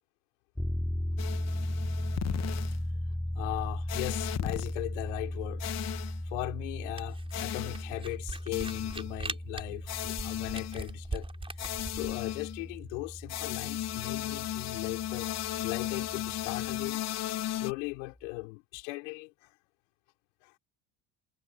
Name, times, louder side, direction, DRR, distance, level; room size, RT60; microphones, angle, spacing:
sound 1, 0.6-16.9, left 1 dB, 5° left, 3.4 m, -37 dB
sound 2, 1.2-2.8 3.9-4.7 5.6-6.2 7.3-7.9 8.5-9.2 9.9-10.9 11.6-12.6 13.3-17.7, left 13 dB, 45° left, 0.9 m, -36 dB
voice 1, 3.4-5.7 6.2-11.3 11.9-15.3 15.6-17.0 17.5-19.5 20.4-20.6, left 27 dB, 90° left, 3.7 m, -38 dB
Camera, 7.0-12.1, right 3 dB, 15° right, 4.8 m, -40 dB
supercardioid pair, 120°, 36 cm